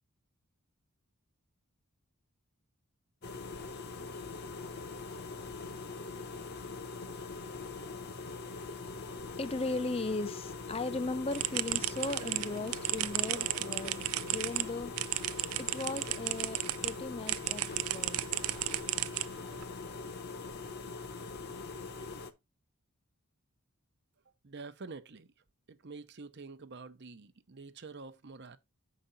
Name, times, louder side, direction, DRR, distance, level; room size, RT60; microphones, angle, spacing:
sound 1, 3.2-22.3, left 4 dB, 45° left, 0.9 m, -42 dB
voice 1, 9.4-14.0 14.3-14.9 15.2-18.3, left 3 dB, 25° left, 0.5 m, -37 dB
sound 2, 11.3-16.9 17.3-19.6, right 16 dB, 75° right, 0.4 m, -34 dB
voice 2, 24.4-25.3 25.7-28.6, right 4 dB, 50° right, 0.7 m, -47 dB
7.8 x 5.1 x 4.0 m
head